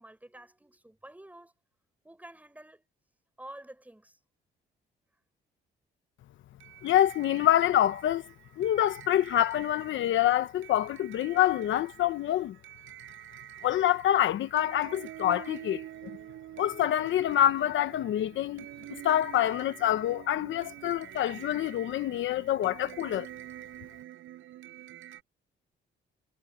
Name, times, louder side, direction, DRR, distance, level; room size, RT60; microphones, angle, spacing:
voice 1, 0.0-1.5 2.0-2.8 3.4-4.2, right 1 dB, 10° right, 6.7 m, -49 dB
sound 1, 6.6-25.2, right 14 dB, 85° right, 6.0 m, -47 dB
voice 2, 6.8-8.3 8.6-12.5 13.6-15.8 16.6-18.6 18.9-23.3, left 12 dB, 75° left, 1.1 m, -26 dB
cardioid pair, 90°, 20 cm